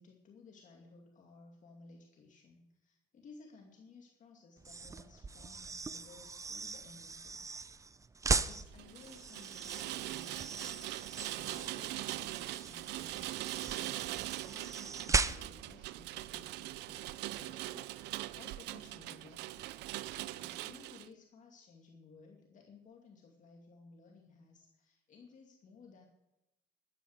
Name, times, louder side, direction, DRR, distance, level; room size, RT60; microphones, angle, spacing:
voice 1, 0.0-7.6 8.3-10.7 11.3-17.9 18.3-26.1, left 4 dB, 45° left, 1 dB, 2.3 m, -58 dB
sound 1, 4.6-15.7, right 4 dB, 20° right, 0.6 m, -38 dB
Rain, 8.7-21.1, right 17 dB, 85° right, 0.5 m, -42 dB
13.0 x 9.6 x 8.0 m, 0.92 s
cardioid pair, 110°, 17 cm